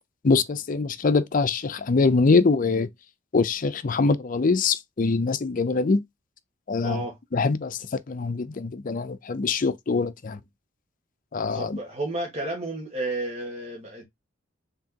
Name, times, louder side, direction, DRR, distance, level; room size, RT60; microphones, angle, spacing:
voice 1, 0.2-2.9 3.3-6.0 6.7-7.0 7.3-10.4 11.3-11.8, left 4 dB, 40° left, 0.5 m, -23 dB
voice 2, 6.8-7.2 11.5-14.0, right 2 dB, 35° right, 1.5 m, -31 dB
4.5 x 3.6 x 2.8 m
head